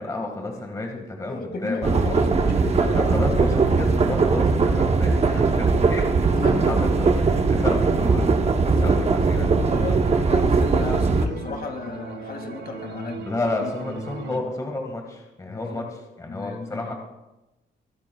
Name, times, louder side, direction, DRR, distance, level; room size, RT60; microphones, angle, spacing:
voice 1, 0.0-2.0 2.4-2.5 2.8-6.2 6.6-8.3 8.8-9.5 13.3-15.8 16.2-16.9, left 2 dB, 15° left, 2 dB, 1.7 m, -31 dB
voice 2, 1.2-3.0 6.3-7.2 8.7-13.3 13.6-13.7 15.5-15.9 16.3-16.9, left 3 dB, 50° left, 4 dB, 2.1 m, -34 dB
sound 1, 1.8-11.3, right 4 dB, 30° right, 0.8 m, -20 dB
sound 2, 9.0-14.4, right 3 dB, 60° right, 0.9 m, -39 dB
24.5 x 9.9 x 2.3 m, 0.98 s
cardioid pair, 140°, 20 cm